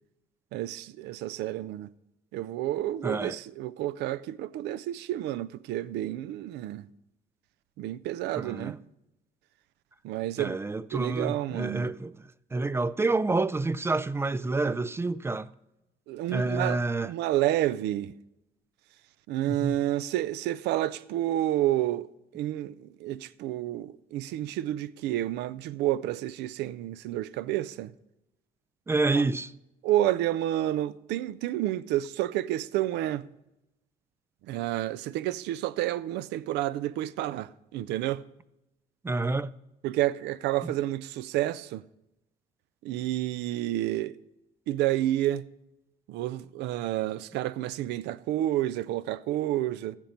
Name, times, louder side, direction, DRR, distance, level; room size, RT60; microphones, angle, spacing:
voice 1, 0.5-1.9 2.3-6.8 7.8-8.8 10.0-10.6 10.9-11.9 16.1-16.8 17.1-18.1 19.3-22.1 22.3-27.9 29.8-33.3 34.5-38.2 39.8-41.8 42.8-44.2 44.7-45.5 46.1-50.0, right 14 dB, 85° right, 0.5 m, -30 dB
voice 2, 3.0-3.4 8.4-8.8 10.4-12.2 12.5-15.5 16.3-17.1 19.5-19.8 28.9-29.5 39.0-39.5 40.6-40.7, right 3 dB, 15° right, 0.3 m, -28 dB
15.0 x 7.4 x 5.2 m
cardioid pair, 110°, 17 cm